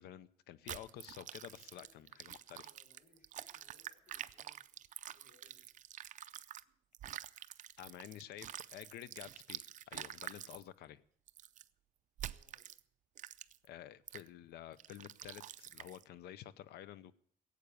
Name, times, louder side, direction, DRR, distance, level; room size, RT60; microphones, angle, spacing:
voice 1, 0.0-2.7 7.8-11.0 13.6-17.1, left 11 dB, 75° left, 17 dB, 0.8 m, -51 dB
Gore sounds, 0.7-6.6 6.9-10.6 11.3-11.6 12.2-12.8 13.2-13.7 14.1-14.3 14.8-16.0, right 11 dB, 50° right, 0.5 m, -48 dB
voice 2, 1.7-5.7 12.2-12.7, left 3 dB, 55° left, 1 dB, 4.1 m, -71 dB
16.5 x 8.3 x 6.9 m, 0.63 s
cardioid pair, 110°, 17 cm